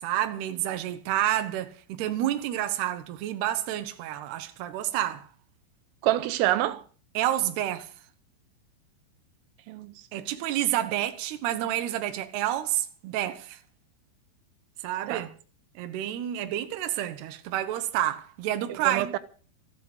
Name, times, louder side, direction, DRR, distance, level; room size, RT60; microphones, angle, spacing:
voice 1, 0.0-5.3 7.1-7.9 10.1-13.6 14.8-15.3 15.8-19.2, right 12 dB, 65° right, 3.0 m, -29 dB
voice 2, 6.0-6.8 9.7-9.9 15.1-15.3 18.7-19.2, right 14 dB, 85° right, 3.5 m, -27 dB
14.5 x 13.5 x 6.6 m
omnidirectional pair, 5.8 m